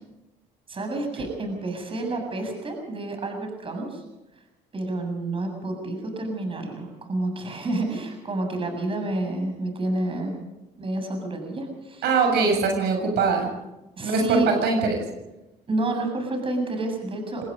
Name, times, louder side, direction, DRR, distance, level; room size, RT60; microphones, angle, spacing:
voice 1, 0.7-4.1 4.7-10.4 10.8-12.1 14.0-14.5 15.7-17.4, right 2 dB, 30° right, 4 dB, 7.3 m, -29 dB
voice 2, 12.0-13.5 14.0-15.0, right 4 dB, 75° right, 3 dB, 7.1 m, -22 dB
26.5 x 20.0 x 5.4 m, 1.0 s
cardioid pair, 110°, 17 cm